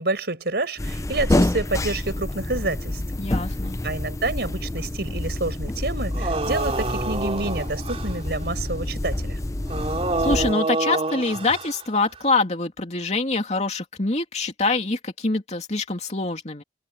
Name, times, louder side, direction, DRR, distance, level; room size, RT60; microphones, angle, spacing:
voice 1, 0.0-3.0 3.8-9.4, right 2 dB, 65° right, 5.4 m, -28 dB
sound 1, 0.8-10.5, left 1 dB, 20° left, 0.5 m, -27 dB
voice 2, 3.2-3.8 10.2-16.6, left 3 dB, 40° left, 2.8 m, -25 dB
sound 2, 6.1-8.2 9.7-11.8, right 2 dB, 35° right, 3.6 m, -27 dB
head